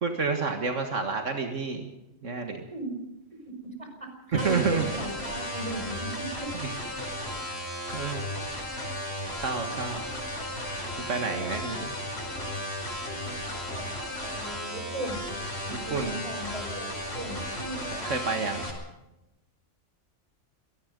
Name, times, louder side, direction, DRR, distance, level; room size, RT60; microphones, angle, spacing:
voice 1, 0.0-1.9 2.2-2.7 4.3-4.8 6.6-6.7 7.9-8.3 9.4-10.0 11.1-11.9 15.9-16.2 17.8-18.7, right 4 dB, 75° right, 5 dB, 2.0 m, -29 dB
voice 2, 3.3-6.5 11.3-11.6 13.2-15.4 15.7-18.2, right 2 dB, 25° right, 4 dB, 5.1 m, -38 dB
sound 1, 4.4-18.7, left 1 dB, 55° left, 5.7 m, -35 dB
26.5 x 18.5 x 5.3 m, 0.91 s
omnidirectional pair, 1.3 m